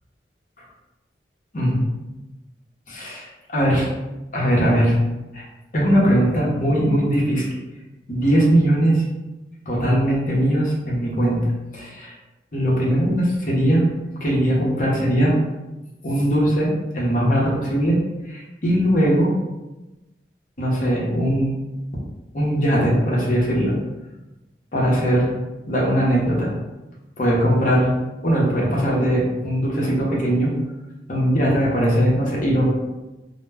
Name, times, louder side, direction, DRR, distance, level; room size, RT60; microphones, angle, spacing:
voice 1, 1.5-1.9 2.9-3.9 4.3-5.0 5.3-5.4 5.7-7.4 8.1-9.0 9.7-12.1 12.5-13.9 14.2-15.3 16.0-18.0 18.3-19.3 20.6-21.6 22.3-23.7 24.7-25.3 25.7-26.5 27.2-27.9 28.2-30.5 31.1-32.7, equal, 45° left, -4 dB, 0.7 m, -20 dB
2.1 x 2.0 x 3.3 m, 1.1 s
head